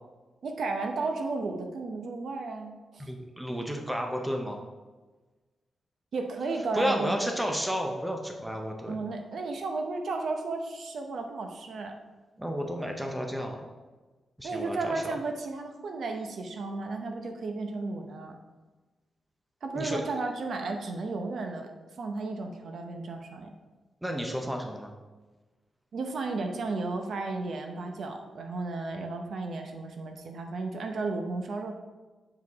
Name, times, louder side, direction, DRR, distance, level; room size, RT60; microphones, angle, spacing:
voice 1, 0.4-3.1 6.1-7.3 8.9-12.0 14.4-18.4 19.6-21.7 22.0-23.5 25.9-31.7, right 3 dB, 55° right, 4 dB, 0.7 m, -33 dB
voice 2, 3.0-4.6 6.7-8.9 12.4-13.6 14.4-15.1 19.7-20.0 24.0-24.9, equal, 5° right, 2 dB, 0.6 m, -32 dB
7.8 x 4.8 x 3.5 m, 1.3 s
wide cardioid pair, 170°, 0 cm